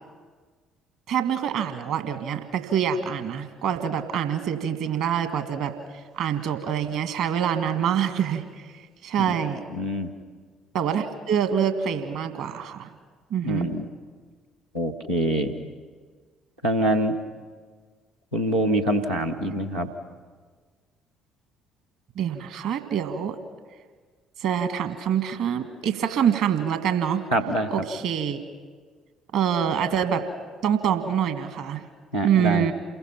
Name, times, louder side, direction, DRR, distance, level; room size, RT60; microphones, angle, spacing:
voice 1, 1.1-5.7 6.2-8.4 9.0-9.6 10.7-12.9 13.3-13.7 22.1-23.4 24.4-27.2 27.7-28.4 29.3-30.3 30.6-31.8 32.2-32.7, right 8 dB, 60° right, 8 dB, 1.7 m, -25 dB
voice 2, 9.7-10.1 13.4-13.9 14.7-15.5 16.6-17.2 18.3-19.9 27.3-27.7 32.1-32.7, right 1 dB, 85° right, -4 dB, 1.4 m, -25 dB
28.5 x 22.0 x 5.9 m, 1.5 s
figure-of-eight pair, 50°, 0 cm